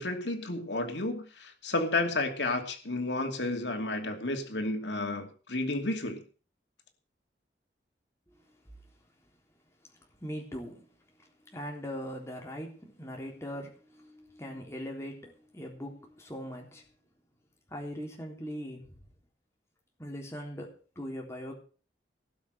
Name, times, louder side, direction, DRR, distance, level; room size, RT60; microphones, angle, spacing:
voice 1, 0.0-6.2, left 2 dB, 90° left, 5 dB, 2.6 m, -32 dB
voice 2, 10.2-10.9 11.2-16.8 17.7-19.0 20.0-21.5, equal, 15° left, 0 dB, 3.5 m, -41 dB
18.5 x 6.2 x 7.9 m, 0.39 s
head